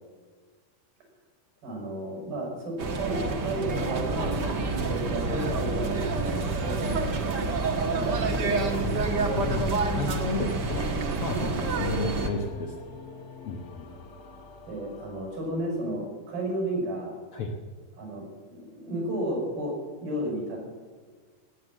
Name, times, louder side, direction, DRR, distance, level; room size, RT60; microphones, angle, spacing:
voice 1, 1.6-7.2 7.9-8.7 14.7-17.2 18.0-20.6, right 1 dB, 85° right, 0 dB, 7.5 m, -33 dB
sound 1, 2.8-12.3, right 3 dB, 60° right, 1.0 m, -28 dB
voice 2, 8.8-10.9 11.1-12.7 13.4-13.9 17.3-17.5, left 3 dB, 90° left, 2 dB, 1.2 m, -33 dB
sound 2, 12.0-16.2, left 4 dB, 65° left, 0.9 m, -47 dB
18.0 x 9.8 x 7.4 m, 1.5 s
omnidirectional pair, 4.3 m